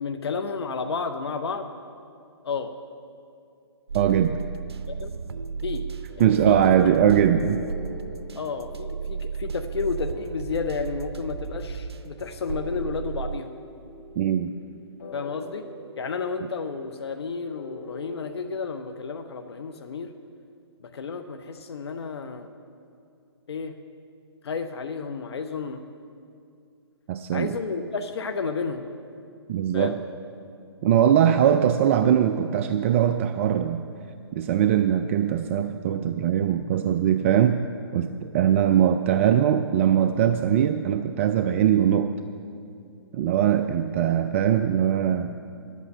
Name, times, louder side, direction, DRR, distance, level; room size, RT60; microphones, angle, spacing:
voice 1, 0.0-1.7 2.4-2.7 4.9-5.1 5.6-5.9 6.2-6.6 8.3-13.5 15.1-15.7 16.0-20.1 20.8-22.5 23.5-23.7 24.4-25.8 27.3-28.9 29.7-30.0, left 5 dB, 70° left, 7 dB, 0.7 m, -31 dB
voice 2, 3.9-4.4 6.2-7.6 14.2-14.5 27.1-27.5 29.5-30.0 30.8-33.8 34.3-37.6 37.9-42.1 43.1-45.3, right 9 dB, 30° right, 8 dB, 0.3 m, -21 dB
sound 1, 3.9-13.4, right 5 dB, 70° right, 0.7 m, -34 dB
sound 2, 6.1-19.9, left 2 dB, 50° left, 3.4 m, -45 dB
10.5 x 8.2 x 8.5 m, 2.5 s
hypercardioid pair, 140°, 14 cm